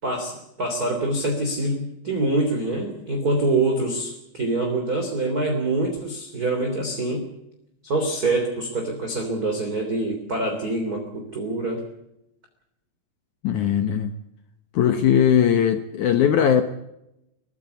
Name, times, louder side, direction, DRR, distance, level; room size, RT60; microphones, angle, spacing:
voice 1, 0.0-7.2 7.8-11.8, right 2 dB, 20° right, 3 dB, 3.2 m, -25 dB
voice 2, 13.4-14.1 14.7-16.6, left 9 dB, 85° left, 8 dB, 1.7 m, -19 dB
23.0 x 15.5 x 8.1 m, 0.84 s
omnidirectional pair, 5.2 m